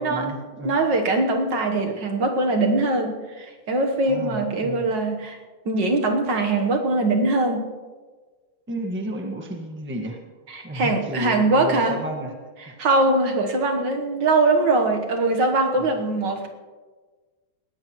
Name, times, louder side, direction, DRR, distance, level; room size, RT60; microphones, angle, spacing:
voice 1, 0.0-0.8 4.1-4.9 8.7-10.2 10.6-12.3 12.7-12.8 15.8-15.9, right 1 dB, 5° right, 2 dB, 1.2 m, -32 dB
voice 2, 0.6-5.4 5.7-7.7 10.5-12.0 12.6-16.5, right 2 dB, 60° right, 3 dB, 1.8 m, -22 dB
20.0 x 16.5 x 3.1 m, 1.4 s
omnidirectional pair, 2.3 m